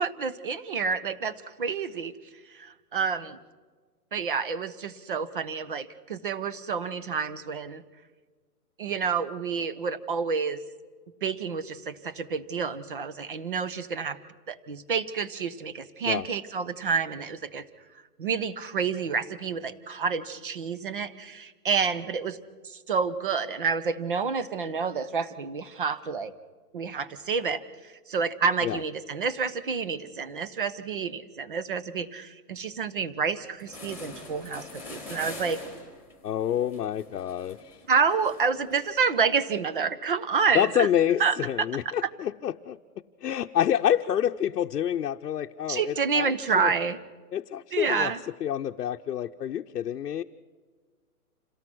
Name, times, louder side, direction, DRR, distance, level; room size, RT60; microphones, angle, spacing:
voice 1, 0.0-2.1 2.5-3.4 4.1-7.8 8.8-10.6 11.2-14.2 14.5-17.7 18.2-22.4 22.6-26.3 26.7-35.6 37.9-40.9 41.2-42.1 45.7-47.0 47.7-48.2, right 5 dB, 35° right, 14 dB, 0.9 m, -29 dB
sound 1, 33.2-33.3 33.6-39.0, left 2 dB, 5° right, 2.6 m, -44 dB
voice 2, 36.2-37.8 40.5-42.8 43.2-46.7 47.3-48.1 48.4-50.2, left 10 dB, 90° left, 3 dB, 0.9 m, -27 dB
28.0 x 17.5 x 6.2 m, 1.5 s
hypercardioid pair, 180°, 46 cm